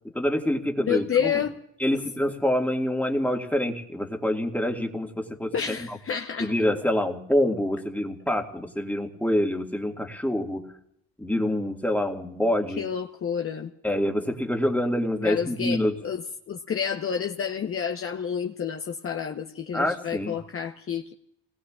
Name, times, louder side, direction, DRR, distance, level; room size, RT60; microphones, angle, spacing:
voice 1, 0.1-1.3 1.8-6.0 6.4-10.7 11.2-12.8 13.8-16.0 19.7-20.4, left 1 dB, 5° left, 2 dB, 2.0 m, -26 dB
voice 2, 0.9-1.5 5.5-6.5 12.8-13.7 15.2-21.1, left 7 dB, 45° left, 3 dB, 1.0 m, -29 dB
30.0 x 19.5 x 2.5 m, 0.75 s
cardioid pair, 75°, 31 cm